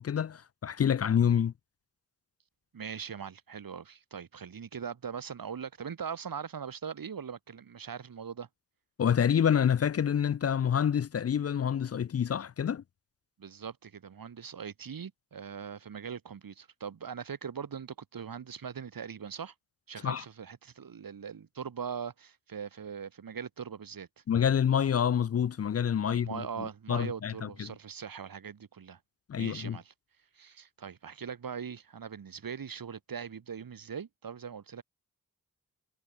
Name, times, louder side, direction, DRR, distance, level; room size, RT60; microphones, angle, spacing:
voice 1, 0.0-1.5 9.0-12.8 20.0-20.2 24.3-27.7 29.3-29.8, left 8 dB, 45° left, 0.5 m, -27 dB
voice 2, 2.7-8.5 13.4-19.5 19.9-24.1 26.0-29.0 29.4-29.9 30.3-34.8, right 7 dB, 80° right, 4.1 m, -41 dB
cardioid pair, 45°, 34 cm